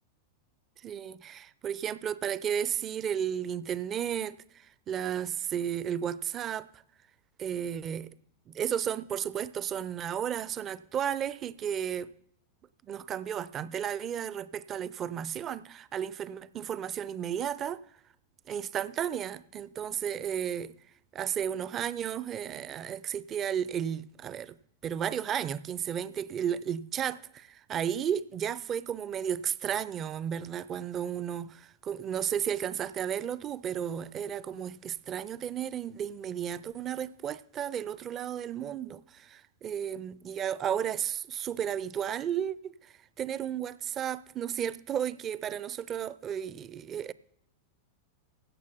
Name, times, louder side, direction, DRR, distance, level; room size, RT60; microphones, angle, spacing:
voice 1, 0.8-6.8 7.4-8.1 8.5-12.1 12.9-17.8 18.5-20.8 21.1-24.6 24.8-47.1, right 9 dB, 30° right, 0.4 m, -33 dB
16.0 x 6.2 x 5.7 m
figure-of-eight pair, 90°, 0 cm